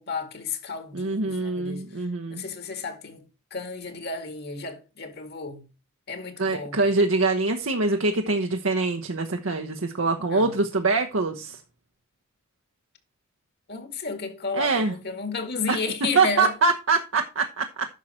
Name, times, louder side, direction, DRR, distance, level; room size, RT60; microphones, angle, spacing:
voice 1, 0.0-1.9 2.3-3.2 3.5-5.7 6.1-6.8 10.3-10.6 13.7-16.5, left 4 dB, 50° left, 2.1 m, -32 dB
voice 2, 0.9-2.4 6.4-11.6 14.5-14.9 15.7-15.8 16.2-17.9, right 3 dB, 75° right, 1.0 m, -24 dB
10.5 x 6.4 x 4.3 m
head